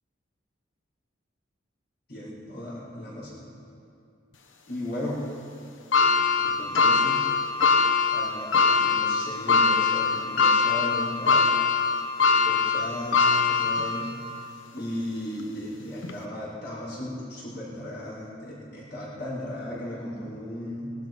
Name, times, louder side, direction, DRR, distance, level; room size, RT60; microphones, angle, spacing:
voice 1, 2.1-3.5 4.7-5.2 6.4-7.3 8.1-11.5 12.4-14.1 14.7-20.9, left 1 dB, 55° left, -8 dB, 5.0 m, -36 dB
sound 1, 5.9-14.3 14.8-14.9 16.0-16.1, left 4 dB, 85° left, 1.1 m, -22 dB
21.0 x 12.0 x 5.4 m, 2.5 s
head